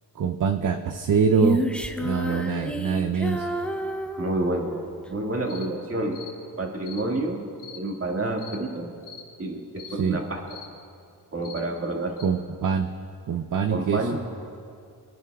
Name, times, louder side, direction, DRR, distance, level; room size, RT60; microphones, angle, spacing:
voice 1, 0.2-1.6 2.0-3.5 9.9-10.2 12.2-12.9 13.3-14.1, right 6 dB, 50° right, 7 dB, 0.6 m, -24 dB
Female singing, 1.4-4.9, equal, 5° left, 0.7 m, -29 dB
voice 2, 4.2-6.3 6.6-7.5 7.7-8.9 9.4-10.4 11.3-12.1 13.7-14.2, right 2 dB, 35° right, 0 dB, 2.0 m, -29 dB
sound 1, 5.5-5.7 6.1-6.3 6.8-7.0 7.6-7.8 8.4-8.6 9.0-9.3 9.8-10.0 10.5-10.7 11.4-11.6 12.2-12.3, left 7 dB, 75° left, 1.4 m, -42 dB
24.5 x 11.0 x 2.4 m, 2.4 s
cardioid pair, 65°, 40 cm